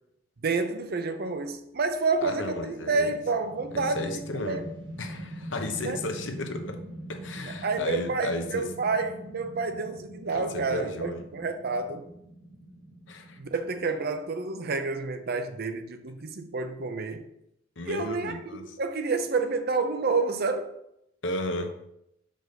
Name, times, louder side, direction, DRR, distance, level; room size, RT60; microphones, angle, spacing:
voice 1, 0.4-4.6 5.8-6.0 7.4-12.1 13.4-17.2 17.8-20.7, right 4 dB, 55° right, 0.6 m, -29 dB
voice 2, 2.2-3.1 3.7-4.7 5.0-6.8 7.1-8.7 10.3-11.3 13.1-13.4 17.8-18.8 21.2-21.8, left 2 dB, 70° left, 0.9 m, -34 dB
sound 1, 2.7-14.9, right 1 dB, 70° right, 1.5 m, -43 dB
6.5 x 5.1 x 4.0 m
head